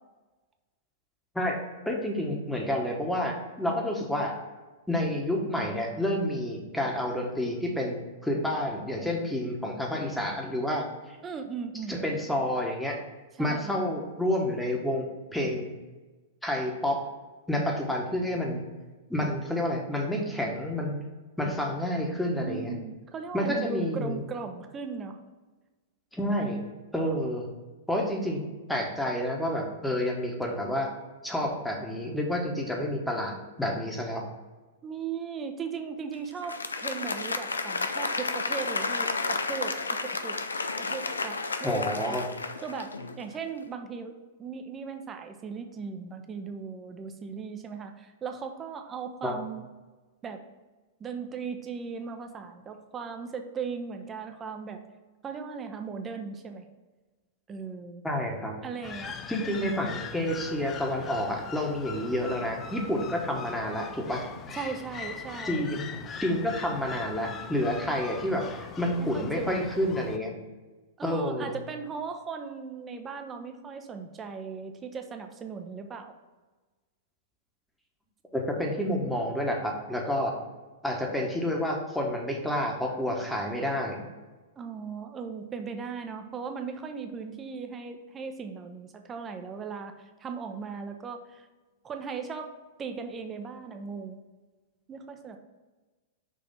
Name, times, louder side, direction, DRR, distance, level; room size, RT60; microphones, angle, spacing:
voice 1, 1.8-4.3 4.9-8.0 8.2-11.2 11.9-13.0 13.4-15.0 15.3-15.7 16.4-17.0 17.5-18.6 19.1-21.0 21.4-22.7 23.3-24.2 26.1-26.6 26.9-27.5 27.9-28.4 28.7-30.9 31.2-34.2 41.6-42.2 49.2-49.3 58.0-58.6 59.3-64.2 65.4-65.9 66.2-70.3 71.0-71.5 78.3-80.3 80.8-84.0, left 1 dB, 5° left, 0 dB, 1.2 m, -29 dB
voice 2, 11.2-12.0 13.4-13.8 22.4-25.2 34.8-40.4 40.8-41.8 42.6-49.7 50.2-50.4 51.0-54.8 55.2-56.7 57.5-58.0 58.6-59.2 59.5-59.6 64.5-65.7 69.0-69.7 71.0-76.1 84.6-91.5 91.8-92.5 92.8-94.2 94.9-95.4, right 5 dB, 25° right, 6 dB, 0.7 m, -38 dB
Applause, 36.3-43.3, left 3 dB, 90° left, 0.4 m, -32 dB
sound 1, 58.8-70.2, left 6 dB, 25° left, 0.4 m, -41 dB
6.3 x 2.8 x 5.5 m, 1.2 s
hypercardioid pair, 110°, 0 cm